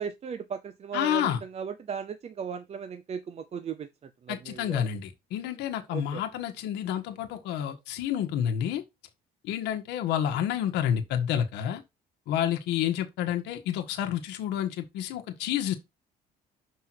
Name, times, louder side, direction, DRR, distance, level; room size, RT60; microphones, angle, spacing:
voice 1, 0.0-4.9 5.9-6.2, right 6 dB, 40° right, 0.7 m, -37 dB
voice 2, 0.9-1.4 4.3-8.8 9.4-11.8 12.3-15.7, left 10 dB, 85° left, 1.5 m, -29 dB
5.8 x 5.4 x 4.6 m
cardioid pair, 110°, 17 cm